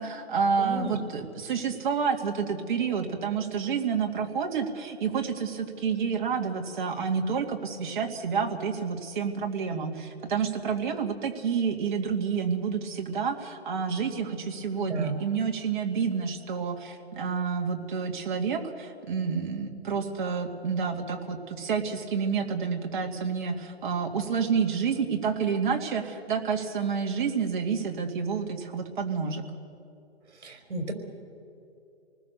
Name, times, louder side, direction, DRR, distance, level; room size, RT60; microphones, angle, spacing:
voice 1, 0.0-29.4, right 6 dB, 45° right, 3 dB, 2.3 m, -29 dB
voice 2, 0.6-1.0 14.9-15.2 30.4-30.9, right 2 dB, 70° right, 5 dB, 4.7 m, -33 dB
28.0 x 20.0 x 6.8 m, 2.7 s
hypercardioid pair, 160°, 34 cm